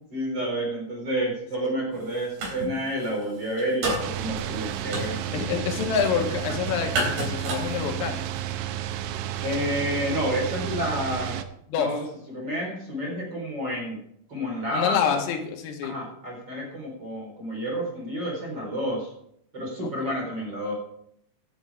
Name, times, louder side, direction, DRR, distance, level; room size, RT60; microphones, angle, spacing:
voice 1, 0.1-5.4 9.4-11.4 11.7-14.0 14.3-15.0 15.8-19.1 19.5-20.7, equal, 25° right, -2 dB, 4.5 m, -30 dB
sound 1, 1.9-2.7 3.0-8.4, right 2 dB, 60° right, 6.0 m, -32 dB
sound 2, 4.0-11.4, right 11 dB, 80° right, 3.0 m, -32 dB
voice 2, 5.3-8.2 11.7-11.9 14.7-15.9 20.1-20.2, left 7 dB, 90° left, 4 dB, 4.2 m, -27 dB
17.0 x 11.0 x 3.7 m, 0.71 s
omnidirectional pair, 5.8 m